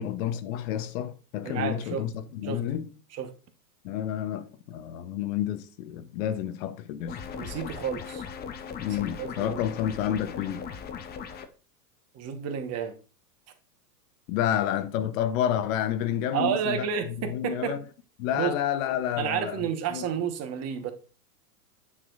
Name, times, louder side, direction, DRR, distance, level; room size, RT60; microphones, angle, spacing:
voice 1, 0.0-2.9 3.8-7.2 8.8-10.6 14.3-16.9 17.2-17.8 18.2-20.1, left 10 dB, 55° left, 0.9 m, -30 dB
voice 2, 1.4-2.0 2.4-2.6 3.1-3.3 7.4-8.2 9.2-9.6 12.1-12.9 16.3-17.7 18.3-18.5 19.2-20.9, right 8 dB, 30° right, 1.2 m, -30 dB
sound 1, 7.1-11.5, left 6 dB, 20° left, 0.7 m, -38 dB
9.6 x 6.0 x 2.5 m
hypercardioid pair, 115°, 48 cm